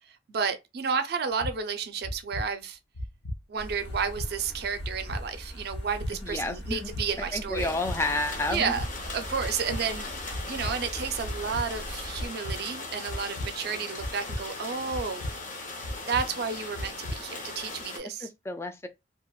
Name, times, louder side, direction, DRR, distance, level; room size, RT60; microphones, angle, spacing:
voice 1, 0.3-2.8 3.5-7.7 8.5-8.8 9.1-10.1 10.5-15.2 16.1-18.3, right 6 dB, 60° right, 0.5 m, -31 dB
sound 1, 1.4-1.5 2.0-2.4 3.0-3.4 3.9-4.3 4.8-5.2 5.7-6.1 6.6-7.0 7.6-8.0 8.5-8.9 9.4-9.8 10.3-10.7 11.2-11.6 12.2-12.6 13.1-13.5 14.0-14.4 14.9-15.3 15.8-16.2 16.8-17.2, left 1 dB, 90° left, 0.6 m, -34 dB
sound 2, 3.6-12.3, equal, 70° left, 0.9 m, -42 dB
voice 2, 6.2-6.9 7.3-8.8 18.2-18.9, left 2 dB, 15° left, 0.3 m, -30 dB
sound 3, 7.6-18.0, left 3 dB, 50° left, 0.7 m, -39 dB
2.8 x 2.1 x 2.2 m
head